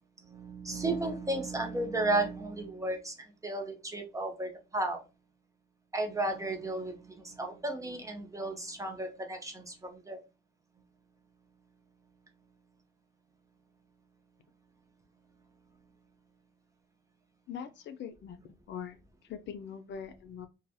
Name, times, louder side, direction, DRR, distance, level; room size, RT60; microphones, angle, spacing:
voice 1, 0.2-5.0 5.9-10.2, right 2 dB, 15° right, 0.8 m, -34 dB
voice 2, 17.5-19.0 19.3-20.5, left 7 dB, 65° left, 0.5 m, -42 dB
3.0 x 2.3 x 2.6 m
cardioid pair, 90°, 20 cm